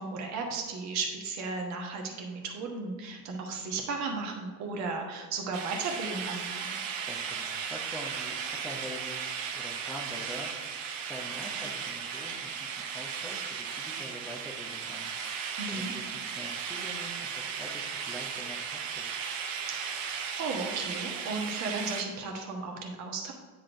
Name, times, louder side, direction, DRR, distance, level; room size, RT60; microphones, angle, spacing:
voice 1, 0.0-6.7 15.6-15.9 19.7-23.3, right 4 dB, 35° right, 2 dB, 1.3 m, -35 dB
sound 1, 5.5-22.0, right 6 dB, 55° right, 0.9 m, -36 dB
voice 2, 7.0-15.1 15.6-19.2, equal, 5° left, -3 dB, 0.8 m, -45 dB
9.6 x 3.7 x 4.5 m, 1.5 s
figure-of-eight pair, 75°, 47 cm